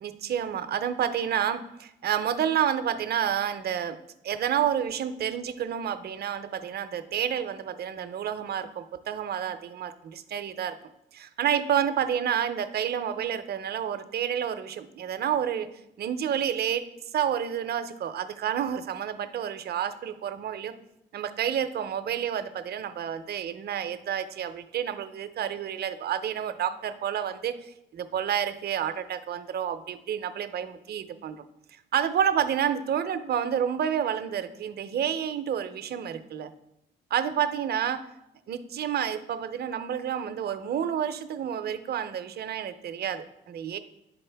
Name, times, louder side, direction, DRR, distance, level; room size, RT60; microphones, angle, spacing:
voice 1, 0.0-4.0 4.2-10.8 11.1-15.7 16.0-16.9 17.1-20.7 21.1-31.4 31.9-36.5 37.1-38.0 38.5-43.8, right 9 dB, 55° right, 11 dB, 0.5 m, -29 dB
10.5 x 4.0 x 3.3 m, 0.86 s
cardioid pair, 90°, 20 cm